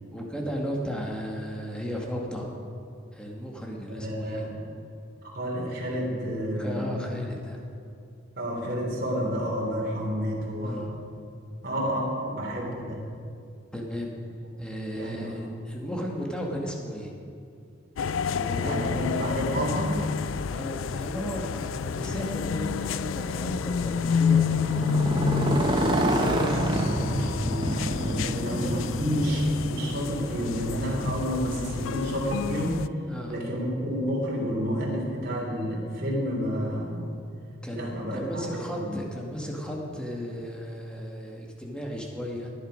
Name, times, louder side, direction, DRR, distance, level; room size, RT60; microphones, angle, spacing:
voice 1, 0.1-2.6 3.1-4.5 6.6-7.7 10.6-10.9 12.2-12.3 13.7-14.1 14.6-17.2 18.3-19.3 20.5-25.0 28.3-29.6 33.1-33.4 37.6-42.5, equal, 5° left, -1 dB, 1.7 m, -35 dB
voice 2, 3.9-4.5 5.3-6.9 8.4-10.9 11.6-13.0 14.9-15.3 18.5-20.0 26.6-32.8 33.3-37.0 37.7-38.2 38.5-38.9, equal, 50° right, -3 dB, 3.1 m, -30 dB
sound 1, 18.0-32.9, left 6 dB, 80° left, 0.4 m, -29 dB
Motorcycle, 24.3-32.3, right 1 dB, 25° right, 1.0 m, -28 dB
17.5 x 10.5 x 5.1 m, 2.5 s
head